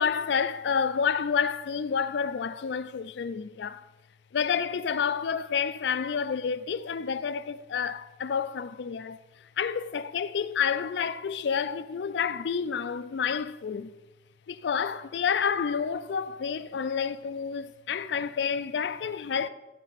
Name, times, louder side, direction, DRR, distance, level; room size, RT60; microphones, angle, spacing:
voice 1, 0.0-3.8 4.3-9.2 9.6-13.9 14.5-19.5, left 6 dB, 80° left, 0.4 m, -29 dB
11.0 x 6.1 x 4.1 m
head